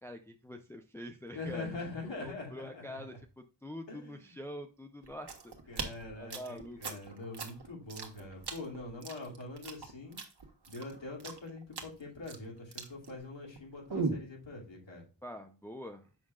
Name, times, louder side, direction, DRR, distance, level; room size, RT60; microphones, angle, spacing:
voice 1, 0.0-1.8 2.2-5.5 6.2-7.0 15.2-16.1, equal, 5° left, 5 dB, 0.6 m, -45 dB
voice 2, 1.3-3.2 3.9-4.4 5.7-10.2 10.7-15.0, left 2 dB, 70° left, -1 dB, 2.7 m, -44 dB
sound 1, 5.0-13.6 13.9-14.3, right 4 dB, 55° right, 1.5 m, -39 dB
7.5 x 6.1 x 2.4 m, 0.34 s
wide cardioid pair, 85°, 47 cm